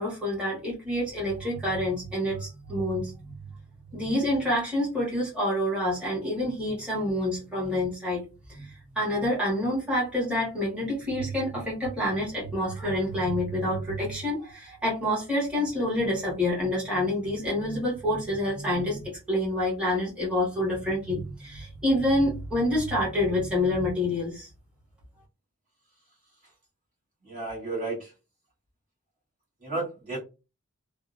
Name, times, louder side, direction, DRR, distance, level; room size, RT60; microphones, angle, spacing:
voice 1, 0.0-3.3 3.9-8.2 8.5-24.5, left 1 dB, 5° right, -7 dB, 1.2 m, -27 dB
voice 2, 27.3-28.1 29.6-30.2, right 3 dB, 35° right, -6 dB, 1.2 m, -32 dB
2.7 x 2.0 x 2.4 m, 0.29 s
head